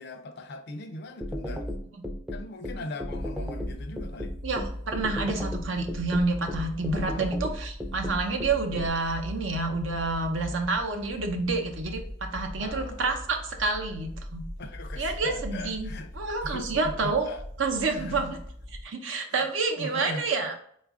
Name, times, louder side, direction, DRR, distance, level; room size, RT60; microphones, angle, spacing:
voice 1, 0.0-1.7 2.3-4.3 6.9-7.2 12.6-13.0 14.6-16.1 16.4-17.4 17.9-18.2 19.3-19.5 19.8-20.3, left 2 dB, 60° left, 0.4 m, -40 dB
sound 1, 1.2-8.9, left 1 dB, 5° right, 0.4 m, -34 dB
sound 2, 3.1-18.8, left 1 dB, 30° right, 0.9 m, -40 dB
voice 2, 4.4-14.4 15.0-17.3 17.6-18.4 18.8-20.5, right 3 dB, 75° right, 0.7 m, -29 dB
4.0 x 2.4 x 3.6 m
head